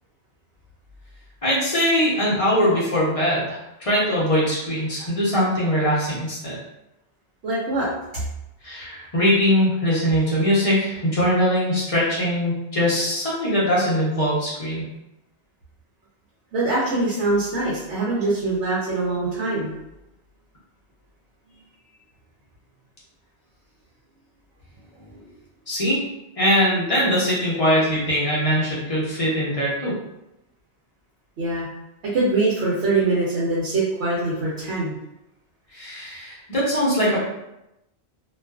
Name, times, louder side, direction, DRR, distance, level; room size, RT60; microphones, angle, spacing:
voice 1, 1.4-6.6 8.6-14.9 25.7-26.0 26.4-29.9 35.7-37.2, equal, 35° left, -7 dB, 0.7 m, -21 dB
voice 2, 7.4-7.9 16.5-19.8 25.1-25.2 31.4-31.7 32.1-34.9, right 2 dB, 90° right, -7 dB, 1.0 m, -23 dB
2.4 x 2.3 x 2.3 m, 0.90 s
omnidirectional pair, 1.2 m